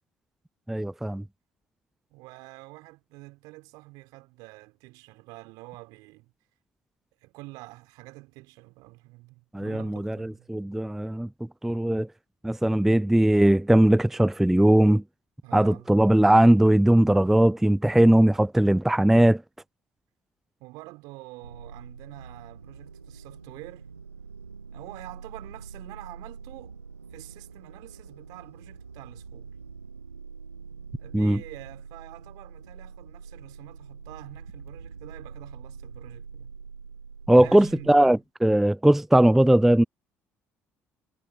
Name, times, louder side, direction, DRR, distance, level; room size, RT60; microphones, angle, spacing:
voice 1, 0.7-1.2 9.5-11.3 11.6-12.1 12.4-15.0 15.5-19.4 31.1-31.4 37.3-39.8, right 1 dB, 5° right, 0.3 m, -19 dB
voice 2, 2.1-6.3 7.2-10.5 15.4-15.9 20.6-23.9 24.7-26.8 27.1-29.6 31.0-36.5 37.3-38.2, right 23 dB, 65° right, 6.4 m, -47 dB
sound 1, 21.4-38.1, right 5 dB, 85° right, 2.4 m, -44 dB
figure-of-eight pair, 50°, 7 cm